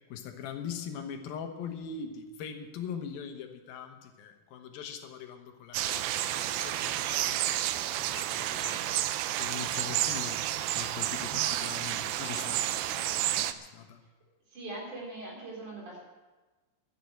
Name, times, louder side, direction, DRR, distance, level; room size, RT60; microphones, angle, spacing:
voice 1, 0.1-9.1 9.4-10.4 10.8-14.0, left 7 dB, 75° left, 6 dB, 2.9 m, -42 dB
sound 1, 5.7-13.5, right 13 dB, 85° right, 2.4 m, -31 dB
voice 2, 14.5-16.1, right 2 dB, 55° right, -2 dB, 5.5 m, -41 dB
12.5 x 10.5 x 7.8 m, 1.3 s
omnidirectional pair, 4.3 m